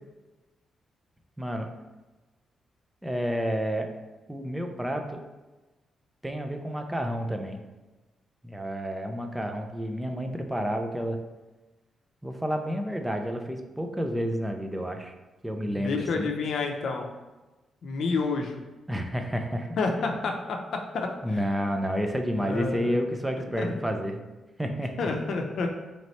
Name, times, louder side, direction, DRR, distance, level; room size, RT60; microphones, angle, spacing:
voice 1, 1.4-1.7 3.0-3.9 4.3-5.2 6.2-7.6 8.4-11.2 12.2-15.1 15.4-16.3 18.9-19.8 21.2-24.2 24.6-25.1, equal, 10° right, 4 dB, 0.4 m, -30 dB
voice 2, 15.7-17.1 17.8-18.6 19.8-21.4 22.3-23.0 23.6-23.7 25.0-25.7, left 4 dB, 70° left, 2 dB, 0.6 m, -29 dB
3.2 x 3.0 x 4.1 m, 1.1 s
cardioid pair, 95°, 0 cm